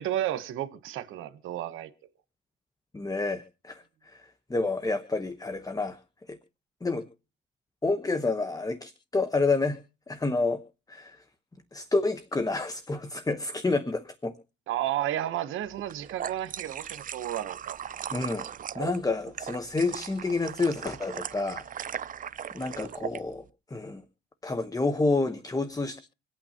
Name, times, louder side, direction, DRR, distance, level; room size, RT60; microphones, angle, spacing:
voice 1, 0.0-1.9 14.7-17.8, right 12 dB, 85° right, 1.1 m, -32 dB
voice 2, 2.9-6.0 6.3-6.4 6.8-7.1 7.8-9.8 10.1-10.6 10.9-11.2 11.7-14.4 18.1-18.4 18.7-21.6 22.5-24.0 24.4-26.0, left 3 dB, 20° left, 1.1 m, -29 dB
sound 1, 15.8-23.2, right 8 dB, 45° right, 0.6 m, -38 dB
26.5 x 8.8 x 2.9 m
cardioid pair, 90°, 20 cm